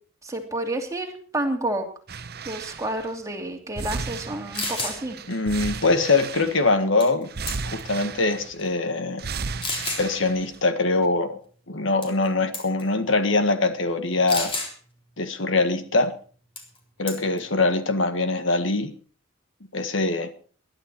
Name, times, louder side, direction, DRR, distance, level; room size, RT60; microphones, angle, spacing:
voice 1, 0.2-1.9 2.4-5.2, right 1 dB, 15° right, 2 dB, 2.8 m, -30 dB
sound 1, 2.1-3.1 3.8-6.8 7.3-8.7 9.2-10.6 11.0-11.1, right 5 dB, 55° right, 0.8 m, -34 dB
sound 2, 4.2-4.3 4.5-5.0 7.0-7.2 7.5-7.9 8.6-8.7 9.6-10.1 12.0-12.3 12.5-12.8 14.3-14.7 16.6-16.8 17.1-17.4, left 2 dB, 25° left, 3.7 m, -30 dB
voice 2, 5.3-7.3 7.6-9.2 10.0-11.4 11.7-14.5 15.2-16.1 17.0-18.9 19.7-20.3, left 3 dB, 65° left, 9 dB, 1.6 m, -23 dB
21.0 x 11.5 x 4.4 m, 0.41 s
head